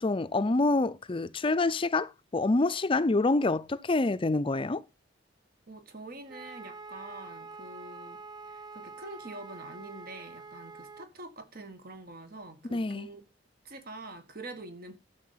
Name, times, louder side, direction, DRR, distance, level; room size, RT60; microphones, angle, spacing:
voice 1, 0.0-4.8 12.7-13.1, left 2 dB, 30° left, 0.5 m, -27 dB
voice 2, 5.7-8.2 8.5-13.2 13.6-15.0, right 2 dB, 50° right, 1.8 m, -45 dB
Wind instrument woodwind instrument, 6.3-11.1, right 4 dB, 20° right, 0.5 m, -46 dB
12.5 x 6.9 x 5.7 m
head